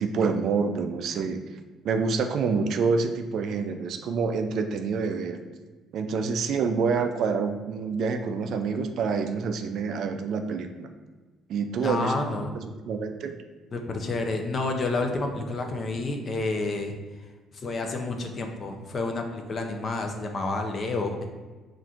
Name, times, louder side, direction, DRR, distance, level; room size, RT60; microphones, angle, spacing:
voice 1, 0.0-1.4 1.8-5.4 5.9-10.9 11.5-12.2 12.5-13.4, right 5 dB, 60° right, 6 dB, 0.3 m, -27 dB
voice 2, 11.8-12.6 13.7-17.3 17.5-21.3, left 2 dB, 35° left, 4 dB, 0.5 m, -29 dB
5.7 x 2.5 x 2.4 m, 1.3 s
cardioid pair, 140°, 0 cm